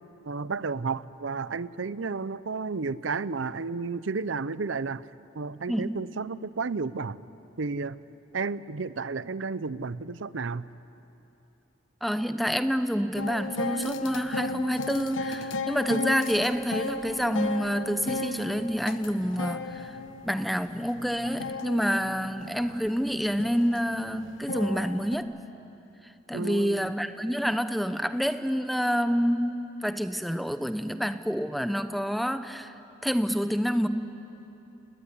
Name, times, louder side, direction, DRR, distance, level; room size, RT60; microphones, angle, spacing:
voice 1, 0.3-5.1 5.3-7.2 7.6-8.0 8.3-10.7 26.3-26.9, right 4 dB, 75° right, 17 dB, 0.7 m, -32 dB
voice 2, 5.7-6.0 12.0-20.0 20.2-25.3 26.3-32.7 33.0-33.9, equal, ahead, 10 dB, 0.8 m, -28 dB
sound 1, 13.2-25.2, left 2 dB, 80° left, 1.2 m, -35 dB
29.5 x 19.5 x 10.0 m, 2.9 s
head